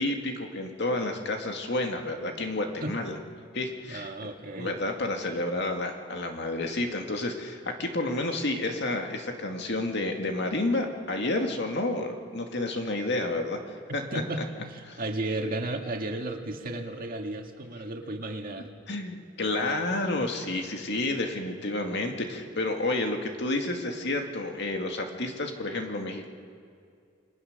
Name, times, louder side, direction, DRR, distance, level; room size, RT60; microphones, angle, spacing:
voice 1, 0.0-3.2 3.5-4.3 4.6-13.6 13.9-14.0 14.9-15.0 18.9-26.3, left 2 dB, 60° left, 3 dB, 2.1 m, -30 dB
voice 2, 3.9-4.8 14.1-18.7, right 2 dB, 50° right, 3 dB, 2.0 m, -34 dB
28.5 x 22.0 x 6.7 m, 2.4 s
head